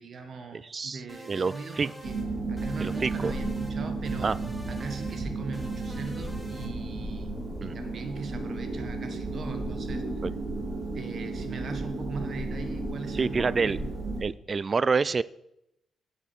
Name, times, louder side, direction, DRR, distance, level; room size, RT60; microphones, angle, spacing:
voice 1, 0.0-2.2 2.5-4.4 4.7-7.3 7.6-10.2 10.9-13.9, right 4 dB, 60° right, 7 dB, 1.4 m, -40 dB
voice 2, 0.5-1.0 1.3-1.9 2.8-3.3 4.2-4.4 7.6-7.8 10.2-10.3 13.1-13.8 14.2-15.2, right 4 dB, 45° right, 20 dB, 0.3 m, -27 dB
sound 1, 1.1-2.3 2.6-3.8 4.0-5.2 5.5-6.7, equal, ahead, 1.9 m, -46 dB
sound 2, 2.0-14.2, right 2 dB, 80° right, 4.2 m, -33 dB
8.6 x 7.9 x 4.5 m, 0.83 s
supercardioid pair, 55°, 0 cm